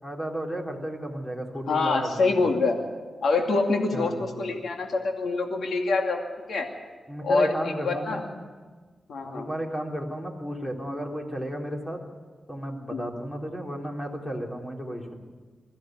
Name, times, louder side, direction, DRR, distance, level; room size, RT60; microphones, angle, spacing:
voice 1, 0.0-2.5 3.9-4.2 7.1-8.3 9.2-12.0 12.5-15.2, equal, 15° left, 1 dB, 3.8 m, -33 dB
voice 2, 1.7-2.8 3.2-6.2 6.5-6.7 7.2-7.5 7.8-8.2 9.1-9.5 12.9-13.1, left 3 dB, 80° left, 3 dB, 2.4 m, -25 dB
22.5 x 14.5 x 9.3 m, 1.4 s
cardioid pair, 90°, 0 cm